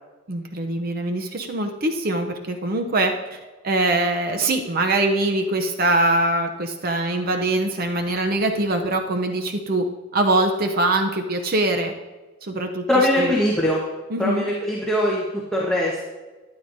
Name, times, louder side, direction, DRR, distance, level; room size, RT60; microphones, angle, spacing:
voice 1, 0.3-3.1 3.6-9.9 10.1-11.9 12.4-12.8 13.2-13.3 14.1-14.5, right 2 dB, 45° right, 4 dB, 0.7 m, -23 dB
voice 2, 12.9-13.8 14.2-16.0, left 1 dB, 5° left, -5 dB, 1.2 m, -21 dB
12.5 x 9.7 x 2.7 m, 1.2 s
head